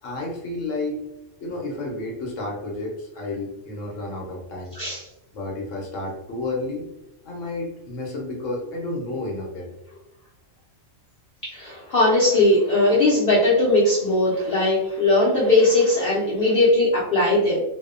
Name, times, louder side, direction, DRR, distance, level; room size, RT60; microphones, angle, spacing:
voice 1, 0.0-1.0 1.4-4.8 5.3-6.9 7.2-9.7, left 2 dB, 80° left, -1 dB, 1.0 m, -31 dB
voice 2, 11.4-17.6, left 2 dB, 55° left, -7 dB, 0.7 m, -19 dB
2.6 x 2.1 x 2.4 m, 0.91 s
omnidirectional pair, 1.3 m